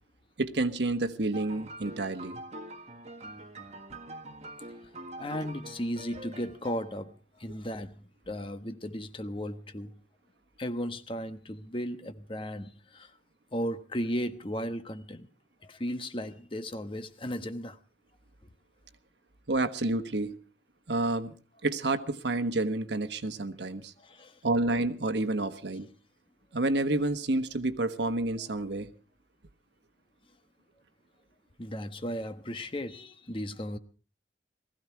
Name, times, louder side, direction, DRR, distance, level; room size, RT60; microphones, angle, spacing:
voice 1, 0.4-2.4 19.5-20.4 20.9-21.3 21.6-23.9 24.4-25.9 26.5-28.9, right 2 dB, 75° right, 1.3 m, -29 dB
sound 1, 1.3-7.1, right 1 dB, 40° right, 1.7 m, -45 dB
voice 2, 5.2-8.0 8.3-9.9 10.6-13.1 13.5-15.3 15.6-17.8 24.0-24.4 31.6-33.8, equal, 30° left, 1.2 m, -35 dB
19.5 x 15.5 x 4.6 m
head